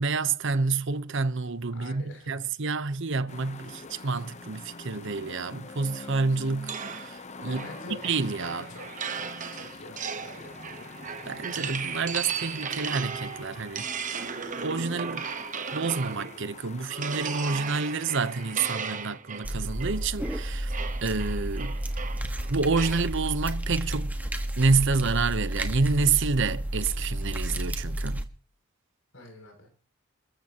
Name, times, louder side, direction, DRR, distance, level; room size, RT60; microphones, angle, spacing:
voice 1, 0.0-7.7 8.0-8.6 11.3-14.2 14.6-15.3 15.7-21.8 22.5-24.1 24.6-28.2, right 4 dB, 60° right, 0.9 m, -28 dB
voice 2, 1.7-2.4 7.5-8.0 8.4-10.9 29.1-29.7, left 2 dB, 65° left, 6.9 m, -46 dB
sound 1, 3.3-18.8, left 3 dB, 35° left, 0.9 m, -45 dB
sound 2, 6.7-16.5 16.9-23.1, right 6 dB, 35° right, 1.1 m, -36 dB
sound 3, 19.4-28.2, right 1 dB, 10° right, 1.4 m, -31 dB
29.0 x 14.0 x 3.0 m
head